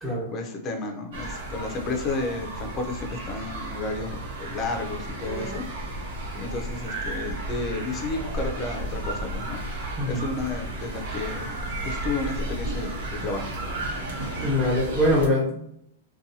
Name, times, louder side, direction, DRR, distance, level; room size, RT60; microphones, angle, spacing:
voice 1, 0.0-5.6 6.0-9.6 10.1-13.5, left 3 dB, 25° left, 3 dB, 0.6 m, -32 dB
sound 1, 1.1-15.3, right 1 dB, 65° right, 0.9 m, -33 dB
voice 2, 14.4-15.8, left 1 dB, 10° right, -10 dB, 1.1 m, -23 dB
2.6 x 2.3 x 2.7 m, 0.71 s
hypercardioid pair, 135°, 0 cm